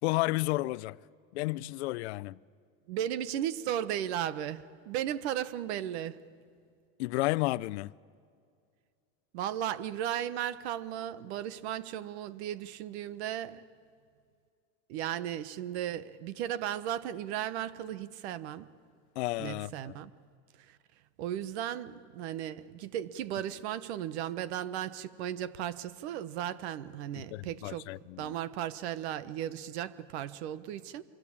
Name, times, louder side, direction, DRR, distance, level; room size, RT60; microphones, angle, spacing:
voice 1, 0.0-1.0 1.3-2.4 7.0-7.9 19.2-19.9 27.2-28.3, left 20 dB, 80° left, 0.6 m, -32 dB
voice 2, 2.9-6.2 9.3-13.6 14.9-18.7 19.4-20.1 20.7-20.8 21.2-27.9 28.2-31.0, right 11 dB, 70° right, 1.3 m, -35 dB
26.0 x 24.5 x 8.7 m
supercardioid pair, 150°, 33 cm